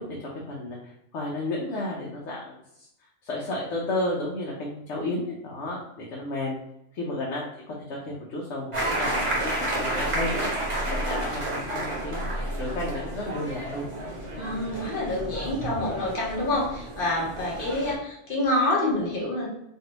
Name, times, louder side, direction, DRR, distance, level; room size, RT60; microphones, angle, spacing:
voice 1, 0.0-2.9 3.2-6.6 6.9-10.5 10.9-13.9, left 2 dB, 75° left, -4 dB, 1.0 m, -32 dB
sound 1, 8.7-18.0, right 1 dB, 30° right, 0.8 m, -31 dB
voice 2, 14.4-19.5, left 1 dB, 50° left, -3 dB, 1.1 m, -27 dB
3.2 x 2.6 x 2.9 m, 0.80 s
omnidirectional pair, 1.2 m